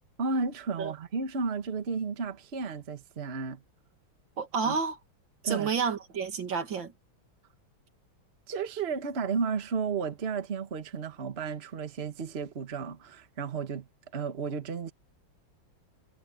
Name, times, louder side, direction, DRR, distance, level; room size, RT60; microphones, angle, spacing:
voice 1, 0.2-3.6 4.6-4.7 5.4-5.7 8.5-13.9 14.1-14.9, right 5 dB, 35° right, 1.5 m, -33 dB
voice 2, 4.4-5.0 5.4-6.9, right 5 dB, 75° right, 2.8 m, -30 dB
omnidirectional pair, 2.1 m